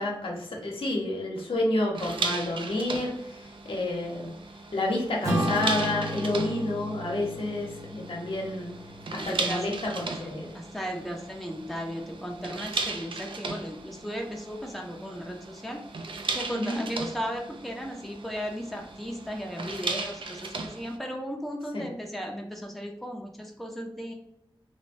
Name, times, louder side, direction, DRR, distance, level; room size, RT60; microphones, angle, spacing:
voice 1, 0.0-4.3 4.7-8.7 9.1-10.5 16.5-16.8 21.7-21.8, left 2 dB, 75° left, -2 dB, 0.8 m, -30 dB
sound 1, 1.9-21.0, right 3 dB, 65° right, 0.4 m, -37 dB
Acoustic guitar / Strum, 5.2-10.0, equal, 35° right, 0.8 m, -34 dB
voice 2, 9.2-9.6 10.1-10.2 10.5-16.1 16.3-24.1, equal, ahead, 1 dB, 0.5 m, -36 dB
3.0 x 2.1 x 2.5 m, 0.79 s
wide cardioid pair, 95°, 9 cm